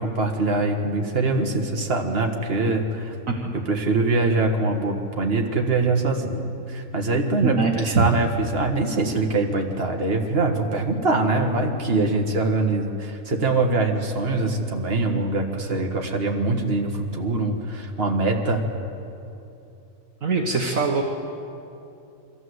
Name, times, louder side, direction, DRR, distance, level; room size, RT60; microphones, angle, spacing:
voice 1, 0.0-3.1 3.5-18.6, right 2 dB, 40° right, 2 dB, 1.8 m, -23 dB
voice 2, 7.4-8.1 20.2-21.0, right 4 dB, 60° right, 1 dB, 1.5 m, -22 dB
23.0 x 14.5 x 8.0 m, 2.8 s
omnidirectional pair, 1.6 m